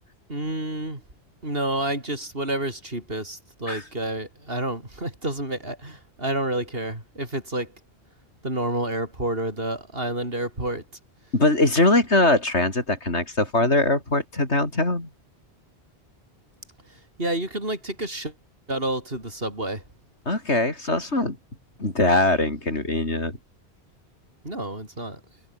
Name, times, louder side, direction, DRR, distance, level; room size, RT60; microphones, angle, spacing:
voice 1, 0.3-1.0 1.4-7.7 8.4-10.8 17.2-18.3 18.7-19.8 24.4-25.2, right 1 dB, 60° right, 6.9 m, -29 dB
voice 2, 11.3-15.1 20.3-21.4 21.8-23.4, left 2 dB, 90° left, 5.3 m, -22 dB
omnidirectional pair, 1.1 m